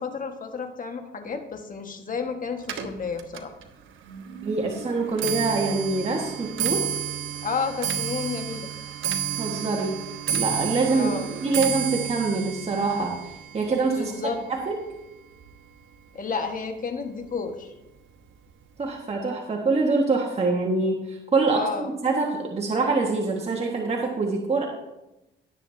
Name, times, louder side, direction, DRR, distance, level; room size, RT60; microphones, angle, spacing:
voice 1, 0.0-3.5 7.4-8.7 10.9-11.3 13.9-14.4 16.1-17.7 21.5-21.9, left 5 dB, 45° left, 5 dB, 1.6 m, -31 dB
Clock, 2.6-16.0 16.3-16.8 17.6-17.7 18.0-18.4 18.6-18.7, right 9 dB, 80° right, 1.1 m, -32 dB
voice 2, 4.4-6.9 9.4-10.0 10.3-11.1 11.4-14.1 14.5-14.7 18.8-24.7, right 3 dB, 30° right, -1 dB, 1.6 m, -25 dB
17.5 x 7.4 x 2.8 m, 0.96 s
cardioid pair, 90°, 20 cm